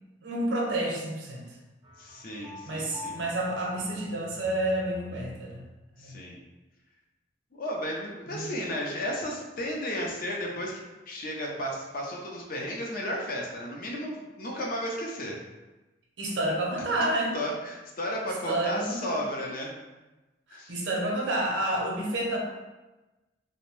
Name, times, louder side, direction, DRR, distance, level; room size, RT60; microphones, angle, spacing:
voice 1, 0.2-1.4 2.6-5.6 6.0-6.2 8.3-8.4 16.2-17.4 18.5-19.2 20.5-22.4, right 1 dB, 75° right, -1 dB, 0.6 m, -29 dB
sound 1, 1.8-5.8, left 2 dB, 25° right, 0.4 m, -46 dB
voice 2, 2.0-3.2 6.0-6.4 7.5-15.4 17.3-19.7 20.5-20.7, equal, 50° left, -1 dB, 0.5 m, -34 dB
2.6 x 2.0 x 3.0 m, 1.1 s
head